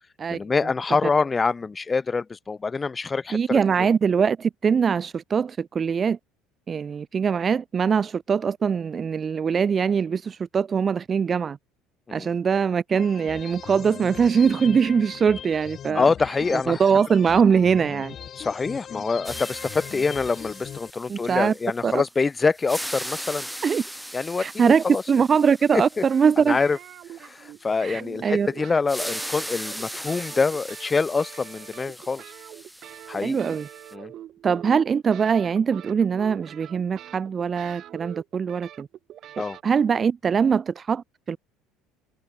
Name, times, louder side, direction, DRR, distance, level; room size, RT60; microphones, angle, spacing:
voice 1, 0.3-3.9 12.1-12.3 15.9-16.8 18.4-23.5 24.1-25.0 25.7-26.0 26.4-26.8 27.2-32.2 33.1-33.6 33.9-34.1 39.4-39.6, left 4 dB, 20° left, 1.2 m, -25 dB
voice 2, 3.3-6.2 6.7-11.6 12.1-16.0 16.5-18.1 21.1-21.5 21.8-22.0 23.6-23.8 24.4-26.6 27.8-28.5 33.2-33.7 34.4-38.9 39.6-41.4, right 6 dB, 30° right, 0.3 m, -22 dB
sound 1, 12.9-20.9, left 9 dB, 40° left, 7.5 m, -39 dB
sound 2, 19.2-22.2 22.5-27.3 28.9-33.9, equal, ahead, 1.3 m, -38 dB
sound 3, 26.0-39.6, right 12 dB, 50° right, 2.1 m, -44 dB
cardioid pair, 120°, 0 cm